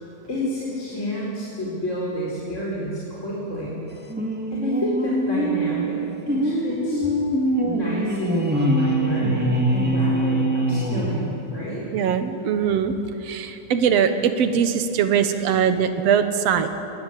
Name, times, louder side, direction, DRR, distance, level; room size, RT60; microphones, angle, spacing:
voice 1, 0.3-3.8 4.5-6.0 6.3-7.0 7.6-11.8, equal, 25° left, -6 dB, 4.2 m, -29 dB
sound 1, 4.1-11.6, right 1 dB, 5° right, 1.6 m, -23 dB
voice 2, 11.9-12.9 13.2-16.7, right 7 dB, 65° right, 9 dB, 2.1 m, -21 dB
21.5 x 19.0 x 8.4 m, 2.9 s
omnidirectional pair, 3.4 m